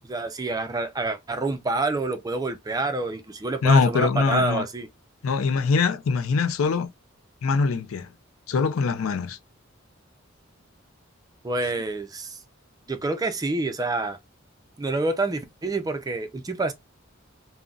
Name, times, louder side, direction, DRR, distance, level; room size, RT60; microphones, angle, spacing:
voice 1, 0.1-4.9 11.4-12.4 12.9-14.2 14.8-16.7, right 3 dB, 20° right, 0.4 m, -27 dB
voice 2, 3.6-4.6 5.2-6.9 7.4-8.1 8.5-9.4, left 4 dB, 80° left, 0.4 m, -22 dB
3.7 x 2.1 x 2.3 m
head